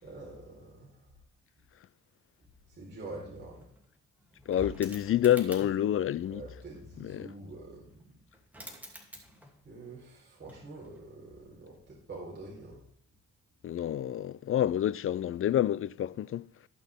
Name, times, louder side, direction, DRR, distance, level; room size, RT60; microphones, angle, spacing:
voice 1, 0.0-1.1 2.7-3.7 6.3-8.2 9.6-12.8, right 2 dB, 35° right, 4.4 m, -46 dB
sound 1, 3.6-5.9 8.0-8.1 8.3-9.7 10.0-11.1 12.5-12.7, left 1 dB, 5° right, 2.9 m, -48 dB
voice 2, 4.5-6.4 7.0-7.3 13.6-16.5, left 11 dB, 45° left, 0.5 m, -28 dB
19.0 x 6.3 x 3.7 m
cardioid pair, 90°, 30 cm